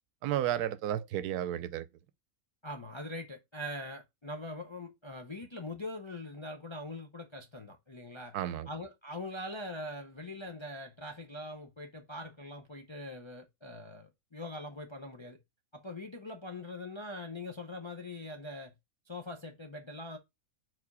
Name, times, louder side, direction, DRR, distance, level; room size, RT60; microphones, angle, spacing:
voice 1, 0.2-1.9 8.3-8.7, right 11 dB, 85° right, 1.1 m, -32 dB
voice 2, 2.6-8.4 8.7-15.4 15.7-18.7 19.1-20.2, left 1 dB, 35° left, 0.4 m, -42 dB
4.8 x 4.2 x 4.7 m
omnidirectional pair, 1.6 m